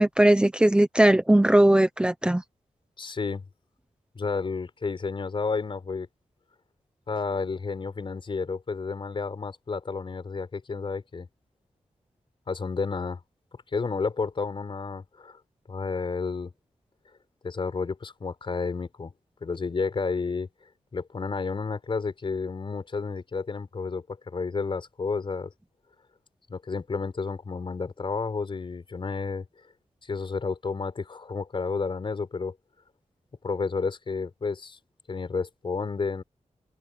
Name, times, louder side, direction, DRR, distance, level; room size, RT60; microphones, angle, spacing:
voice 1, 0.0-2.4, right 1 dB, 10° right, 0.9 m, -19 dB
voice 2, 3.0-3.4 4.1-6.1 7.1-11.3 12.5-13.2 13.7-15.4 15.7-16.5 17.4-19.1 19.4-20.5 20.9-25.5 26.5-29.4 30.0-32.5 33.4-34.8 35.1-36.2, left 4 dB, 45° left, 4.9 m, -31 dB
wide cardioid pair, 165°, 12 cm